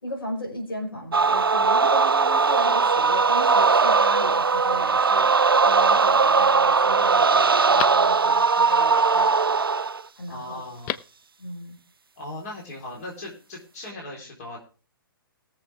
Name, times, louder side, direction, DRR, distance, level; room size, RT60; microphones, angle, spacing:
voice 1, 0.0-5.3 5.6-9.3 10.2-10.6 11.4-11.8, left 1 dB, 75° left, 1 dB, 4.8 m, -36 dB
sound 1, 1.1-10.0, right 4 dB, 75° right, 0.5 m, -19 dB
Telephone, 5.5-6.1 6.6-6.7 7.1-8.6 10.6-11.2 11.5-11.6, left 12 dB, 20° left, 0.4 m, -36 dB
voice 2, 10.3-11.0 12.2-14.6, left 1 dB, 45° left, -1 dB, 3.8 m, -38 dB
20.0 x 7.3 x 3.4 m, 0.37 s
figure-of-eight pair, 120°, 12 cm